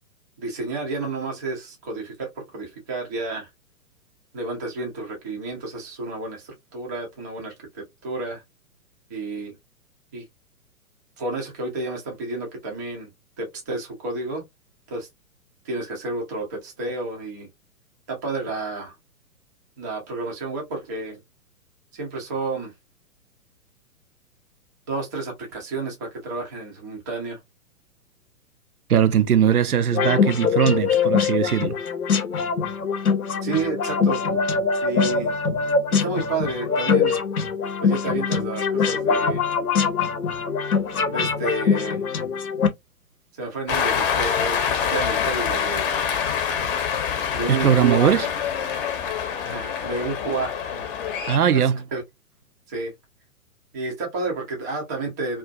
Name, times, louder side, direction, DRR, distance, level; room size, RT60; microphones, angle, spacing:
voice 1, 0.4-3.5 4.3-8.4 9.1-9.5 10.1-10.2 11.2-13.1 13.4-14.4 14.9-15.1 15.6-17.5 18.1-18.9 19.8-21.2 21.9-22.7 24.9-27.4 33.4-34.3 34.8-35.3 35.9-37.2 37.8-39.4 41.1-42.0 43.4-44.6 44.9-46.0 47.3-48.2 49.4-50.9 51.5-52.0 52.7-52.9 53.7-55.4, right 3 dB, 15° right, 0.3 m, -30 dB
voice 2, 28.9-31.8 47.5-48.3 51.3-51.8, right 8 dB, 90° right, 0.6 m, -19 dB
sound 1, 29.9-42.7, left 5 dB, 80° left, 0.8 m, -23 dB
Cheering, 43.7-51.4, left 7 dB, 40° left, 0.7 m, -25 dB
2.4 x 2.3 x 2.4 m
figure-of-eight pair, 120°, 43 cm